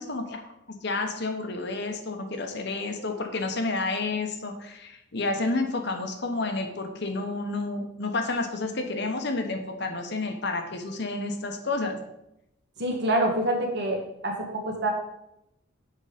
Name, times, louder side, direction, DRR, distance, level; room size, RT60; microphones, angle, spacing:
voice 1, 0.0-12.0, left 3 dB, 55° left, 5 dB, 0.9 m, -30 dB
voice 2, 12.8-14.9, right 1 dB, 55° right, 1 dB, 1.5 m, -26 dB
6.6 x 5.2 x 5.0 m, 0.83 s
head